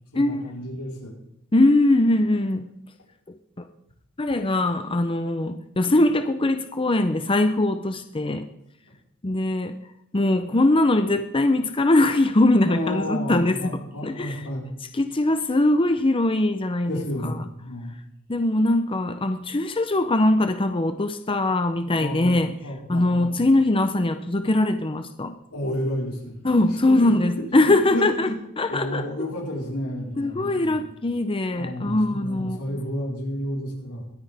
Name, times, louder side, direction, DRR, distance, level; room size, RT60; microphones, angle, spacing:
voice 1, 0.1-1.2 12.7-14.7 16.9-18.0 22.0-23.3 25.5-26.4 26.9-27.1 27.3-28.4 28.7-30.7 31.6-34.0, left 1 dB, 85° left, -2 dB, 4.5 m, -31 dB
voice 2, 1.5-2.7 4.2-8.5 9.2-9.7 10.1-14.4 14.9-17.4 18.3-22.5 22.9-25.3 26.4-28.3 28.6-29.0 30.2-32.6, left 2 dB, 25° left, 8 dB, 0.6 m, -21 dB
21.5 x 9.7 x 3.5 m, 0.77 s
head